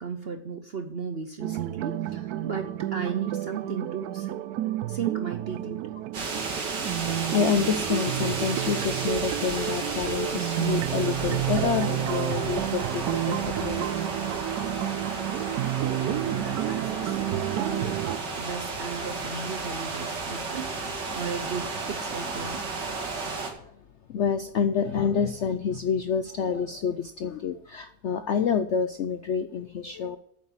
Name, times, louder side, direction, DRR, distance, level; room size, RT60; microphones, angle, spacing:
voice 1, 0.0-4.4 4.9-6.0 15.8-18.0 18.4-22.7, right 5 dB, 55° right, 7 dB, 0.7 m, -36 dB
sound 1, 1.4-18.2, right 14 dB, 70° right, 1.0 m, -30 dB
sound 2, 6.1-23.5, right 3 dB, 85° right, 2.5 m, -33 dB
voice 2, 7.1-14.1 23.5-23.6 24.1-30.2, left 6 dB, 70° left, 10 dB, 0.6 m, -28 dB
8.9 x 7.4 x 7.4 m, 0.67 s
omnidirectional pair, 1.8 m